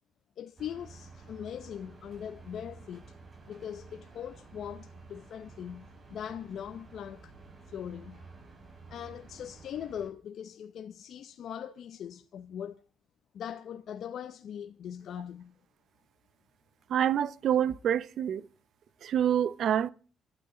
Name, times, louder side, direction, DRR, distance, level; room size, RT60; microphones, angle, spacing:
voice 1, 0.4-3.0 3.5-7.3 7.7-8.2 8.9-12.8 13.3-15.6, left 9 dB, 70° left, 0.7 m, -41 dB
sound 1, 0.6-10.1, right 4 dB, 35° right, 5.4 m, -51 dB
voice 2, 16.9-18.4 19.0-19.9, right 9 dB, 70° right, 0.7 m, -27 dB
28.0 x 12.0 x 3.8 m
cardioid pair, 90°, 0 cm